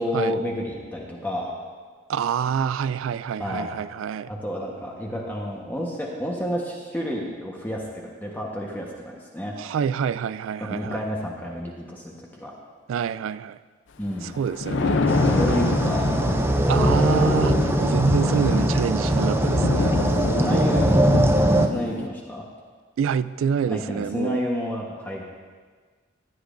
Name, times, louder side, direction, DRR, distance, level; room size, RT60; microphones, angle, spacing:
voice 1, 0.0-1.5 3.4-3.7 4.3-9.6 10.6-12.5 14.0-14.4 15.2-16.1 16.7-17.3 20.3-20.9 21.6-22.4 23.6-25.2, equal, 10° left, -2 dB, 1.1 m, -30 dB
voice 2, 2.1-4.3 9.6-11.0 12.9-13.6 14.2-15.1 15.5-15.6 16.7-20.0 20.5-20.7 23.0-24.4, right 7 dB, 90° right, 15 dB, 0.3 m, -27 dB
Thunder, 14.3-22.1, left 3 dB, 70° left, 0.6 m, -26 dB
sound 1, 15.1-21.7, right 1 dB, 10° right, 0.4 m, -21 dB
15.0 x 10.5 x 2.6 m, 1.5 s
head